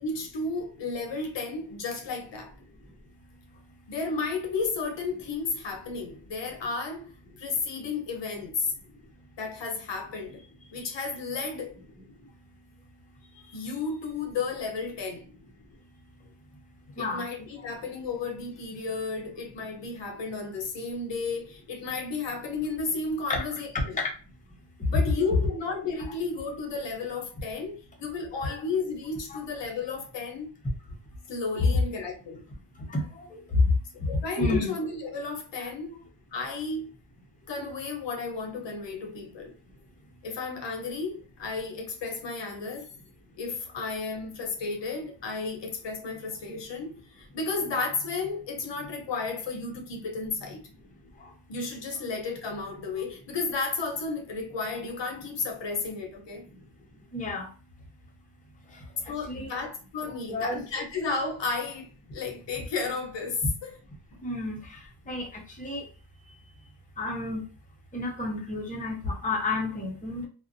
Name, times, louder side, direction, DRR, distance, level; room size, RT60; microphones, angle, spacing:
voice 1, 0.0-2.5 3.9-7.1 7.4-8.7 9.4-10.4 10.7-11.7 13.5-15.3 17.0-24.0 24.9-30.5 31.3-32.4 34.1-36.0 36.3-36.9 37.5-39.5 40.2-42.9 43.4-50.6 51.5-56.4 59.1-63.8, left 4 dB, 65° left, 0.7 m, -33 dB
voice 2, 33.3-33.6 34.4-34.7 35.6-35.7 57.1-57.5 59.3-59.5 60.3-60.6 64.2-64.6 65.1-65.3 65.6-65.8 67.0-67.4 67.9-70.3, left 2 dB, 15° left, 0.7 m, -30 dB
2.4 x 2.1 x 2.5 m
cardioid pair, 90°, 46 cm